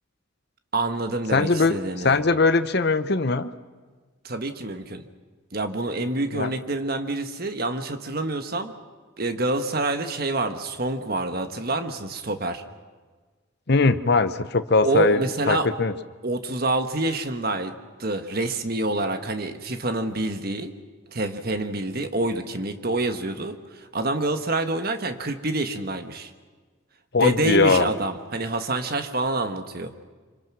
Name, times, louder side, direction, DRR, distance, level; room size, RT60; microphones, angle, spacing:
voice 1, 0.7-2.2 4.2-5.0 5.5-8.7 9.2-12.6 14.8-15.7 16.2-17.7 18.0-20.7 21.1-26.3 27.1-30.0, right 2 dB, 45° right, 8 dB, 1.5 m, -27 dB
voice 2, 1.3-3.5 6.3-6.5 13.7-15.9 27.1-27.9, left 3 dB, 50° left, 11 dB, 0.9 m, -20 dB
26.0 x 25.5 x 6.2 m, 1.4 s
head